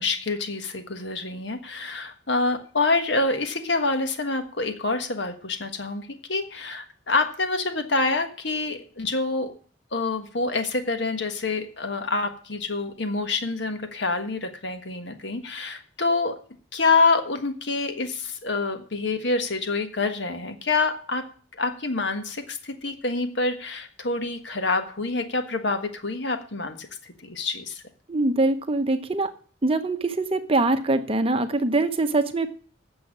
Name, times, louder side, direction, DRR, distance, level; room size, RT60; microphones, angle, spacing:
voice 1, 0.0-9.6 9.9-16.3 16.7-21.2 21.6-27.8, left 3 dB, 60° left, 7 dB, 1.4 m, -27 dB
voice 2, 28.1-29.3 29.6-32.5, right 2 dB, 30° right, 8 dB, 0.9 m, -23 dB
8.5 x 7.1 x 8.7 m, 0.43 s
head